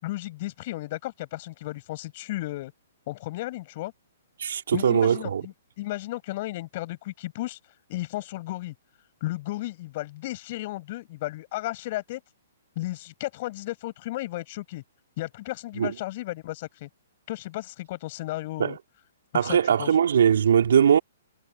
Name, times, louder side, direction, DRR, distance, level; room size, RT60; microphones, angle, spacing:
voice 1, 0.0-2.7 3.1-3.9 4.7-7.6 7.9-8.7 9.2-12.2 12.8-14.8 15.2-16.9 17.3-18.8 19.3-19.9, left 17 dB, 45° left, 7.2 m, -34 dB
voice 2, 4.4-5.4 15.8-15.9 18.6-18.7 19.3-21.0, right 8 dB, 70° right, 3.1 m, -20 dB
hypercardioid pair, 135°, 0 cm